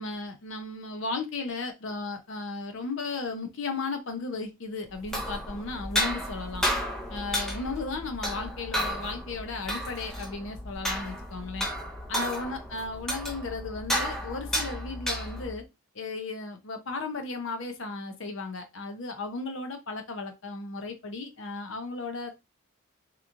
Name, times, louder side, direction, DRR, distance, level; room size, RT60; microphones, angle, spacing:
voice 1, 0.0-6.7 7.1-11.7 12.1-15.6 15.9-22.4, left 3 dB, 60° left, 0.6 m, -35 dB
sound 1, 4.9-15.6, equal, ahead, 0.4 m, -32 dB
2.9 x 2.4 x 2.5 m
head